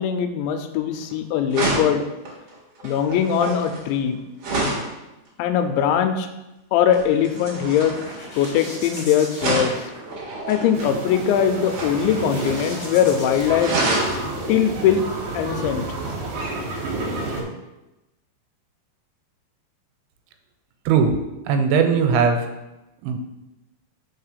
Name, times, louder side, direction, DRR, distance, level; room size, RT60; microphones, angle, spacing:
voice 1, 0.0-2.0 2.8-4.2 5.4-6.3 6.7-8.0 8.4-9.8 10.5-13.7 14.5-15.0 15.3-15.8, left 9 dB, 85° left, 8 dB, 2.9 m, -21 dB
sound 1, 0.9-1.1 1.5-4.9 6.9-9.0 9.4-10.9 11.6-12.8 13.1-13.2 13.5-14.2 16.1-16.2, right 2 dB, 45° right, 2.1 m, -28 dB
sound 2, 7.2-14.8, left 1 dB, 35° left, 1.9 m, -40 dB
sound 3, 10.7-17.4, right 2 dB, 60° right, 2.7 m, -30 dB
voice 2, 20.9-21.2 21.5-22.5 23.0-23.2, right 6 dB, 85° right, 6 dB, 3.2 m, -18 dB
5.6 x 5.0 x 6.6 m, 0.96 s
omnidirectional pair, 5.3 m